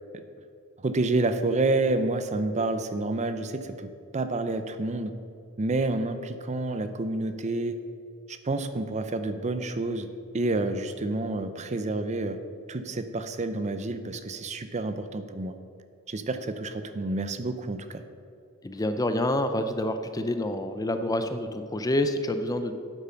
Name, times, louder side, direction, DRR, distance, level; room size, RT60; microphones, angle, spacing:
voice 1, 0.8-5.1 5.6-7.8 8.3-10.1 10.3-12.4 12.7-15.5 16.1-18.0, right 2 dB, 30° right, 10 dB, 0.5 m, -29 dB
voice 2, 18.6-22.7, left 1 dB, 15° left, 8 dB, 0.5 m, -27 dB
9.1 x 7.7 x 5.7 m, 2.5 s
head